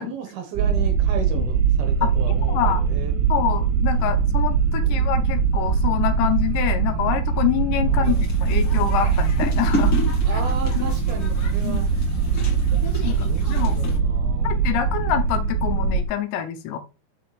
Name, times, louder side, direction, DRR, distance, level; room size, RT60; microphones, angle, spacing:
voice 1, 0.0-3.1 4.0-4.2 4.8-5.1 7.8-8.3 10.2-11.9 12.8-14.7, right 7 dB, 70° right, 6 dB, 2.8 m, -34 dB
sound 1, 0.6-16.1, right 5 dB, 90° right, 2.9 m, -21 dB
voice 2, 2.5-2.8 3.3-9.9 10.8-10.9 11.6-11.8 13.0-13.8 14.4-16.8, left 11 dB, 80° left, 8 dB, 2.9 m, -26 dB
sound 2, 8.0-14.0, left 2 dB, 60° left, 1.4 m, -32 dB
8.1 x 6.8 x 3.2 m, 0.32 s
omnidirectional pair, 5.1 m